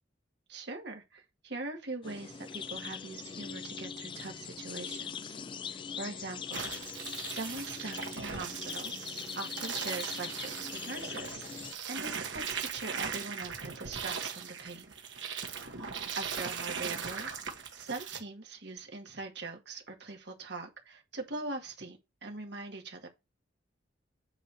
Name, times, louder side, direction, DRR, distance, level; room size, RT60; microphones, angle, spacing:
voice 1, 0.5-5.4 5.7-6.7 7.3-8.9 9.4-15.0 16.2-17.3 17.8-23.1, right 3 dB, 65° right, 2.0 m, -42 dB
sound 1, 2.0-11.7, left 6 dB, 25° left, 0.3 m, -42 dB
sound 2, 6.5-18.2, right 6 dB, 85° right, 1.5 m, -39 dB
9.0 x 3.3 x 5.8 m
head